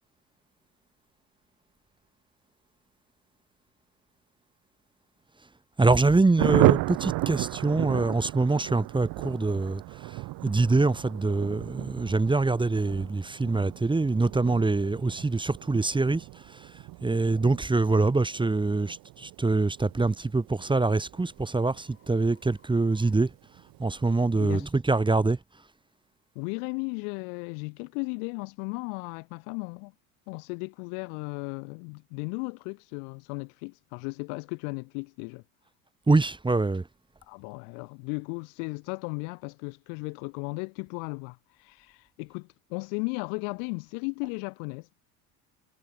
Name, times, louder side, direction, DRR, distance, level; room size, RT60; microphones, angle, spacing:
voice 1, 5.8-23.3 23.8-25.4 36.1-36.9, right 3 dB, 10° right, 0.9 m, -25 dB
Thunder, 6.4-22.5 22.8-22.9 23.2-23.3 23.6-24.0, right 20 dB, 50° right, 0.5 m, -32 dB
sound 1, 15.3-15.4 16.0-16.2 16.8-17.0 19.6-24.1, left 5 dB, 30° left, 7.7 m, -65 dB
voice 2, 24.4-24.7 26.4-29.9 30.3-35.4 37.3-44.9, left 40 dB or more, 75° left, 0.6 m, -35 dB
hypercardioid pair, 70°, 44 cm